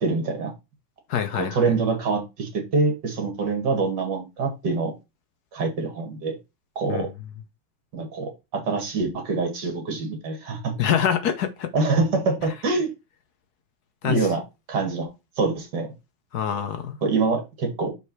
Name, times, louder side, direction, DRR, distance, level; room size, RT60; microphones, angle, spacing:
voice 1, 0.0-0.5 1.3-4.9 5.5-6.4 6.8-7.1 7.9-10.7 11.7-12.9 14.0-14.4 14.7-15.1 15.4-15.9 17.0-17.9, right 4 dB, 60° right, 2.5 m, -25 dB
voice 2, 1.1-1.8 6.9-7.1 10.8-11.7 14.0-14.2 16.3-17.0, left 8 dB, 65° left, 1.1 m, -25 dB
5.6 x 4.8 x 4.5 m
omnidirectional pair, 2.1 m